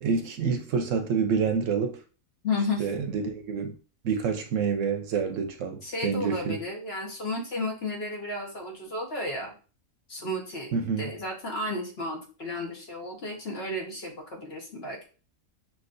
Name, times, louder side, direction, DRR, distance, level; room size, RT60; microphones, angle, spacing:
voice 1, 0.0-2.0 2.8-3.7 4.0-6.6 10.7-11.1, right 6 dB, 70° right, 1.0 m, -27 dB
voice 2, 2.4-2.9 5.8-9.5 10.1-10.7 11.0-15.0, left 2 dB, 50° left, 1.4 m, -33 dB
5.9 x 2.8 x 2.6 m
omnidirectional pair, 1.4 m